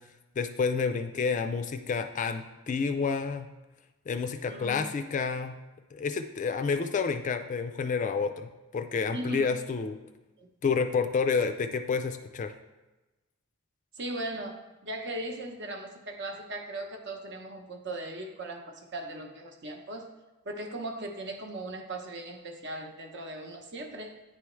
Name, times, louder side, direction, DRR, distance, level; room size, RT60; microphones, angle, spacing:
voice 1, 0.4-3.5 4.1-5.6 5.9-10.0 10.6-12.5, left 5 dB, 35° left, 8 dB, 0.3 m, -29 dB
voice 2, 4.5-4.9 9.1-9.5 10.4-10.5 14.0-20.1 20.4-24.2, right 1 dB, 55° right, 3 dB, 0.8 m, -38 dB
9.7 x 3.5 x 3.1 m, 1.1 s
head